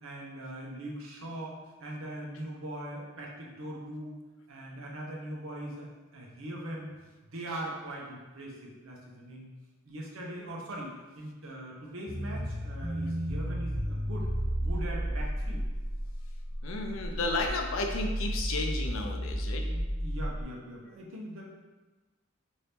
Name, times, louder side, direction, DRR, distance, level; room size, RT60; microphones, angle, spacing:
voice 1, 0.0-4.1 4.5-6.9 7.3-9.5 9.8-14.3 14.6-15.6 19.7-21.4, right 1 dB, 75° right, -2 dB, 0.7 m, -41 dB
sound 1, 12.1-20.4, equal, 30° right, 0.5 m, -33 dB
voice 2, 16.6-19.7, left 2 dB, 70° left, 3 dB, 0.4 m, -33 dB
2.9 x 2.7 x 3.4 m, 1.2 s
head